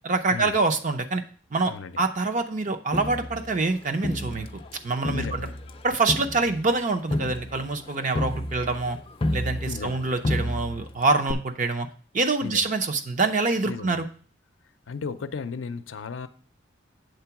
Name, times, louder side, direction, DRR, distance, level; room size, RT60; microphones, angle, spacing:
voice 1, 0.0-1.2 1.5-5.5 5.8-9.0 9.3-11.9 12.1-14.1, right 3 dB, 40° right, 6 dB, 0.7 m, -25 dB
voice 2, 1.7-2.0 5.1-5.6 9.7-10.1 12.4-12.7 13.6-14.0 14.9-16.3, left 5 dB, 80° left, 11 dB, 0.5 m, -35 dB
Crowd, 2.9-4.7 5.0-10.0 10.2-10.9 11.3-11.4, left 1 dB, 30° left, 0.5 m, -30 dB
8.1 x 3.8 x 5.8 m, 0.43 s
head